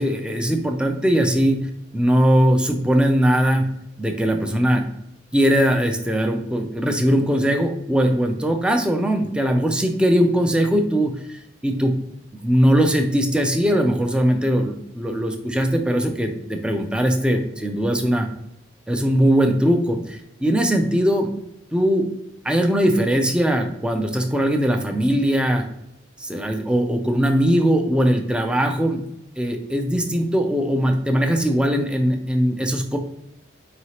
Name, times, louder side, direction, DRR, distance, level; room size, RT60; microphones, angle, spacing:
voice 1, 0.0-1.7 1.9-3.7 4.0-4.8 5.3-11.9 12.3-18.3 18.9-21.3 21.7-22.1 22.4-25.6 26.2-29.0 29.4-33.0, equal, 5° right, 4 dB, 0.4 m, -20 dB
4.7 x 3.1 x 2.8 m, 0.81 s
head